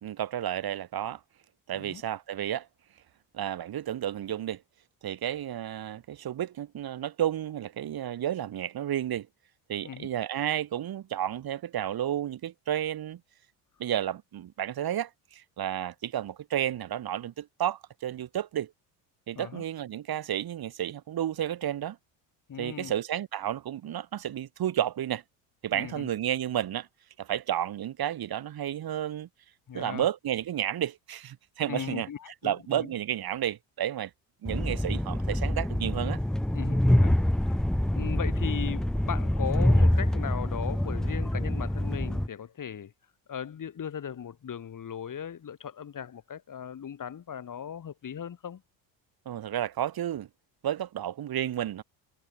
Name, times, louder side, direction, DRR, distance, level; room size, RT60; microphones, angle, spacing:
voice 1, 0.0-1.2 1.7-2.7 3.3-4.6 5.0-9.3 9.7-13.2 13.8-18.7 19.3-22.0 22.6-25.2 25.6-26.9 27.2-29.3 29.7-32.1 32.4-34.1 34.4-36.2 49.3-50.3 50.6-51.8, right 11 dB, 50° right, 2.6 m, -31 dB
voice 2, 22.5-22.9 25.7-26.1 29.7-30.1 31.6-32.9 36.5-37.6 37.9-42.9 43.3-48.6, left 8 dB, 40° left, 3.8 m, -38 dB
Train, 34.5-42.3, left 1 dB, ahead, 0.3 m, -26 dB
supercardioid pair, 75°, 47 cm